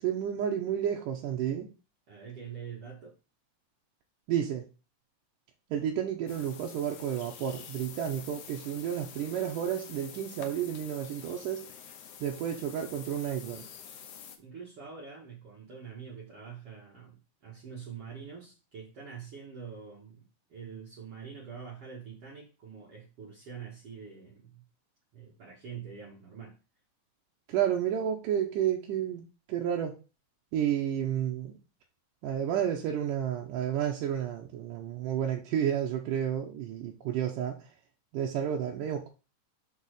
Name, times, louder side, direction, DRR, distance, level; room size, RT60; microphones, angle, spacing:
voice 1, 0.0-1.7 4.3-4.6 5.7-11.7 12.2-13.6 27.5-29.2 29.5-30.0 30.5-31.5 32.2-37.6 38.1-39.1, right 9 dB, 75° right, 0 dB, 2.3 m, -31 dB
voice 2, 2.1-3.1 14.4-24.6 25.1-26.5, right 6 dB, 50° right, -4 dB, 2.1 m, -45 dB
sound 1, 6.3-14.4, left 8 dB, 70° left, 2.3 m, -47 dB
6.4 x 4.1 x 6.5 m, 0.31 s
omnidirectional pair, 4.0 m